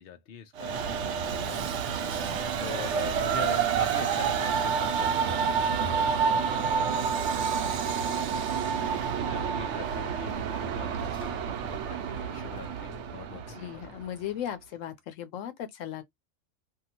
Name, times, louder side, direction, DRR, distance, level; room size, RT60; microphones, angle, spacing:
voice 1, 0.0-1.7 2.6-5.5 6.2-8.6 9.2-14.1, left 8 dB, 55° left, 0.8 m, -43 dB
Train, 0.6-14.0, right 6 dB, 70° right, 0.8 m, -29 dB
voice 2, 2.0-2.4 6.4-6.8 13.3-16.0, left 10 dB, 90° left, 1.0 m, -38 dB
2.7 x 2.3 x 2.8 m
omnidirectional pair, 1.3 m